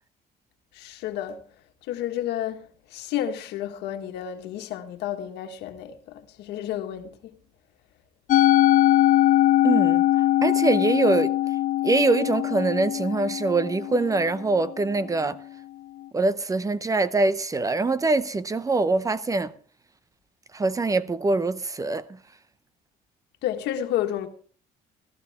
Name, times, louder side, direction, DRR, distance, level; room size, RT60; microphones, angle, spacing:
voice 1, 0.7-1.4 1.9-7.4 23.4-24.3, left 11 dB, 85° left, 1.6 m, -31 dB
Musical instrument, 8.3-14.7, left 14 dB, 50° left, 0.5 m, -21 dB
voice 2, 9.6-10.0 10.4-11.4 11.8-15.4 16.1-19.5 20.5-22.2, right 3 dB, 20° right, 0.7 m, -23 dB
15.0 x 14.0 x 3.6 m
cardioid pair, 110°, 17 cm